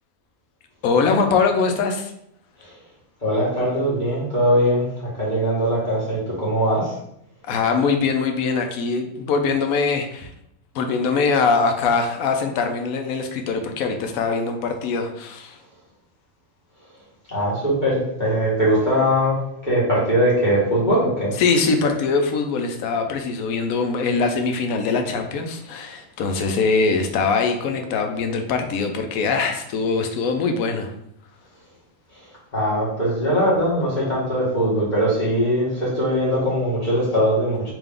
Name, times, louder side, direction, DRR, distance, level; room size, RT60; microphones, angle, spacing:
voice 1, 0.8-2.1 7.5-10.3 10.7-15.6 21.4-30.9, left 4 dB, 80° left, 5 dB, 1.0 m, -22 dB
voice 2, 3.2-6.9 17.3-21.3 32.5-37.7, equal, 30° left, -8 dB, 1.7 m, -21 dB
3.4 x 2.9 x 3.6 m, 0.73 s
omnidirectional pair, 1.5 m